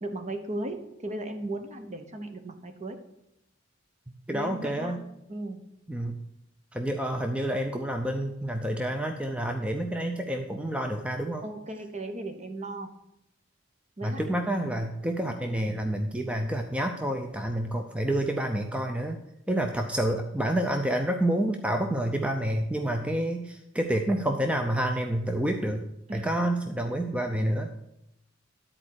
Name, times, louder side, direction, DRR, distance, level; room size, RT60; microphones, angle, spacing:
voice 1, 0.0-3.0 4.3-5.0 5.3-5.6 11.4-12.9 14.0-14.2 26.1-26.4, right 1 dB, 35° right, 7 dB, 1.0 m, -36 dB
voice 2, 4.3-5.0 5.9-6.2 6.7-11.5 14.0-19.2 19.5-25.9 26.1-27.7, right 1 dB, 5° right, 4 dB, 0.5 m, -28 dB
11.0 x 4.4 x 6.4 m, 0.82 s
head